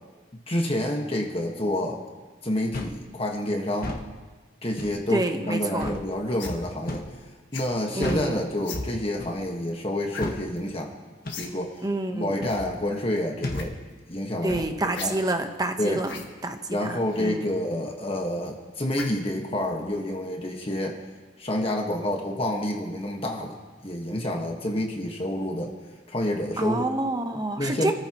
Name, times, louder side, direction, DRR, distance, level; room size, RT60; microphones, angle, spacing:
voice 1, 0.5-2.0 2.4-4.0 4.6-7.1 7.5-10.9 11.4-11.9 12.1-13.7 14.1-15.2 15.8-16.0 16.7-21.0 21.4-25.7 26.1-26.9 27.6-27.9, left 1 dB, 30° left, 1 dB, 1.5 m, -28 dB
sound 1, 2.7-3.0 3.7-4.1 4.8-5.0 5.8-6.0 6.9-7.2 8.0-8.3 9.2-9.4 10.2-10.4 11.2-11.4 12.4-12.6 13.4-13.6 14.5-14.7, left 1 dB, 50° left, 1.5 m, -33 dB
voice 2, 5.1-6.0 7.9-8.4 11.8-12.4 14.4-16.1 16.4-17.4 26.6-27.9, right 2 dB, 20° right, 5 dB, 1.1 m, -28 dB
sound 2, 6.4-6.6 7.5-7.8 8.6-8.9 10.1-10.3 10.6-10.7 11.3-11.5 11.8-11.9 12.4-12.7 13.4-13.7 14.9-15.1 16.0-16.3 17.1-17.2 18.9-19.2 19.7-19.8, left 3 dB, 65° left, 1.9 m, -36 dB
27.0 x 14.5 x 3.0 m, 1.3 s
head